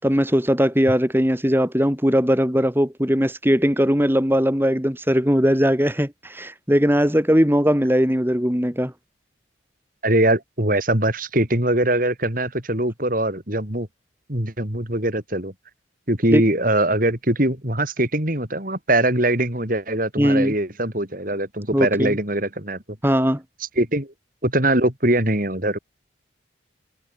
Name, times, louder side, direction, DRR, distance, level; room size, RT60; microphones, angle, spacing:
voice 1, 0.0-8.9 16.3-16.4 20.2-20.5 21.7-22.1 23.0-23.4, equal, 10° right, 3.5 m, -19 dB
voice 2, 10.0-13.9 14.3-15.5 16.1-22.8 23.8-24.1 24.4-25.8, right 1 dB, 45° right, 5.1 m, -22 dB
head